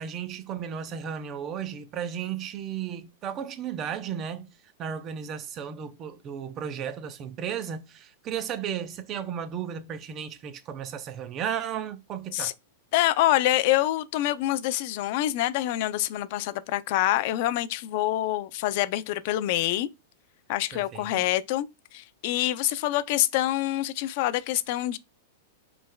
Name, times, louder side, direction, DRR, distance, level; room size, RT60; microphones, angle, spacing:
voice 1, 0.0-4.5 4.8-12.5 20.7-21.3, right 8 dB, 25° right, 0.6 m, -34 dB
voice 2, 12.9-19.9 20.5-25.0, left 14 dB, 45° left, 0.4 m, -26 dB
5.3 x 3.2 x 2.2 m
supercardioid pair, 160°, 0 cm